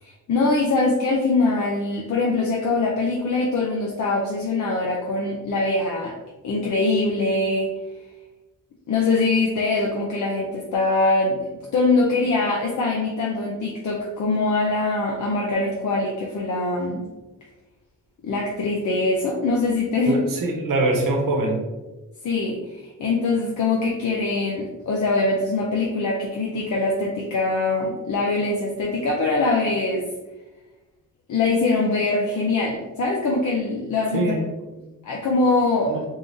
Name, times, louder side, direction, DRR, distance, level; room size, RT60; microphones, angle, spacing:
voice 1, 0.0-6.1 6.4-7.7 8.9-11.4 11.7-17.1 18.2-20.2 22.2-30.1 31.3-34.4 35.0-36.0, left 3 dB, 60° left, -2 dB, 0.6 m, -23 dB
voice 2, 20.1-21.6 34.1-34.4 35.9-36.0, right 2 dB, 70° right, 0 dB, 1.0 m, -23 dB
3.7 x 3.3 x 2.6 m, 1.1 s
wide cardioid pair, 130°, 34 cm